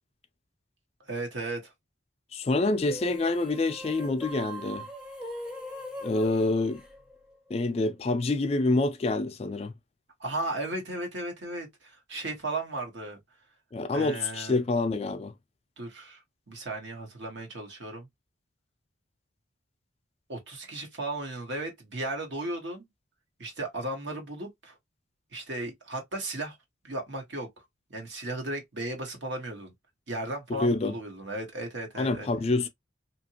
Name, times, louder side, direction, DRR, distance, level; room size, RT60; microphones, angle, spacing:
voice 1, 1.1-1.7 10.2-13.2 13.9-14.6 15.8-16.2 16.5-18.1 20.3-22.9 23.4-24.7 25.3-26.6 26.8-27.5 27.9-29.7 30.1-32.3, right 2 dB, 65° right, 1.2 m, -35 dB
voice 2, 2.3-4.8 6.0-6.8 7.5-9.7 13.7-15.3 30.5-31.0 32.0-32.7, left 2 dB, 30° left, 0.3 m, -27 dB
sound 1, 2.8-7.5, left 1 dB, 5° right, 0.6 m, -41 dB
2.8 x 2.5 x 2.8 m
head